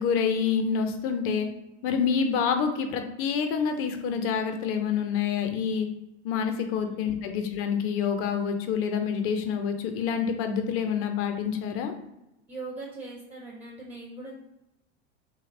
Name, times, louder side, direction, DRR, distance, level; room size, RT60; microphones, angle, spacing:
voice 1, 0.0-1.5 1.8-5.9 6.2-11.9, left 6 dB, 40° left, 6 dB, 0.4 m, -27 dB
voice 2, 6.6-7.1 12.5-14.3, right 2 dB, 20° right, -3 dB, 0.4 m, -40 dB
2.8 x 2.0 x 2.4 m, 0.90 s
hypercardioid pair, 95°, 35 cm